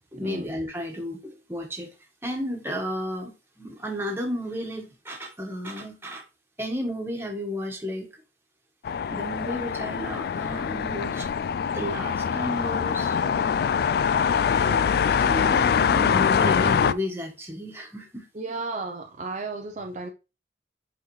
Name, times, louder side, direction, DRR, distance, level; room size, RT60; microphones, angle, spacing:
voice 1, 0.1-1.9 2.2-6.2 6.6-8.1 9.1-11.3 11.7-13.4 14.4-14.9 15.2-18.3, equal, 15° right, 1.5 m, -33 dB
sound 1, 8.8-16.9, left 7 dB, 60° left, 0.3 m, -24 dB
voice 2, 18.3-20.1, right 3 dB, 40° right, 0.6 m, -33 dB
8.1 x 4.2 x 3.2 m
head